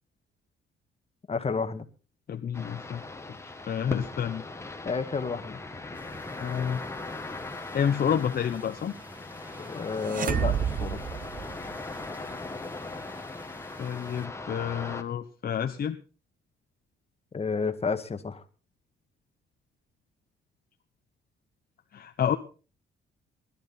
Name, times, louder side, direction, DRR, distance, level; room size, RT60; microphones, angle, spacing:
voice 1, 1.3-1.9 4.9-5.6 9.6-11.0 17.3-18.4, left 5 dB, 30° left, 1.7 m, -31 dB
voice 2, 2.3-3.0 3.7-4.4 6.4-6.8 7.7-8.9 13.8-16.0 21.9-22.4, left 8 dB, 50° left, 1.0 m, -29 dB
sound 1, 2.5-15.0, left 3 dB, 15° left, 1.9 m, -39 dB
sound 2, 5.9-14.3, equal, 10° right, 2.9 m, -50 dB
sound 3, 10.0-12.0, right 8 dB, 45° right, 0.8 m, -30 dB
20.0 x 12.0 x 4.2 m
cardioid pair, 90°, 20 cm